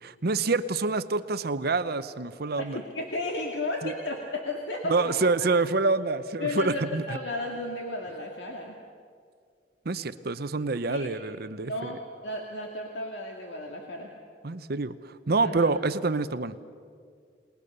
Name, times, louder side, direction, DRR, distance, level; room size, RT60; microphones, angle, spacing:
voice 1, 0.0-2.8 3.8-3.9 4.8-7.2 9.8-11.9 14.4-16.6, right 3 dB, 60° right, 13 dB, 0.8 m, -27 dB
voice 2, 2.6-5.2 6.4-8.8 10.9-11.1 11.6-14.1 15.4-15.7, left 2 dB, 80° left, 0 dB, 2.2 m, -34 dB
29.0 x 20.0 x 6.8 m, 2.1 s
head